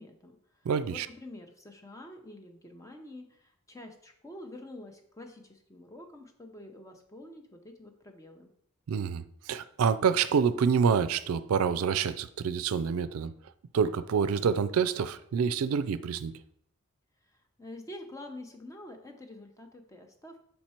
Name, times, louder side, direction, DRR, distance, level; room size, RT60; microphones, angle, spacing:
voice 1, 0.0-8.5 17.3-20.4, left 1 dB, 15° left, 5 dB, 0.6 m, -47 dB
voice 2, 0.7-1.1 8.9-13.3 13.7-16.3, right 6 dB, 90° right, 13 dB, 0.4 m, -27 dB
5.5 x 4.4 x 4.3 m, 0.69 s
head